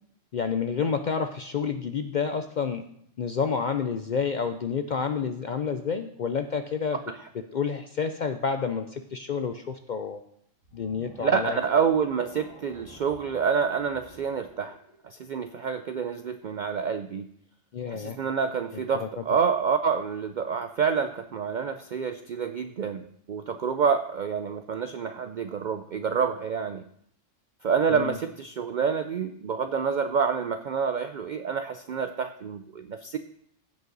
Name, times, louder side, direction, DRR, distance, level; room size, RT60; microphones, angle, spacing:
voice 1, 0.3-2.8 3.2-7.0 7.5-10.2 10.7-11.6 17.7-18.2 19.0-19.1 27.9-28.2, left 6 dB, 60° left, 8 dB, 0.5 m, -29 dB
sound 1, 10.6-15.8, right 1 dB, 85° right, 2.6 m, -50 dB
voice 2, 11.2-14.8 15.0-17.3 17.9-26.8 27.6-33.2, right 6 dB, 70° right, 9 dB, 0.4 m, -28 dB
15.5 x 5.5 x 3.9 m, 0.69 s
omnidirectional pair, 1.3 m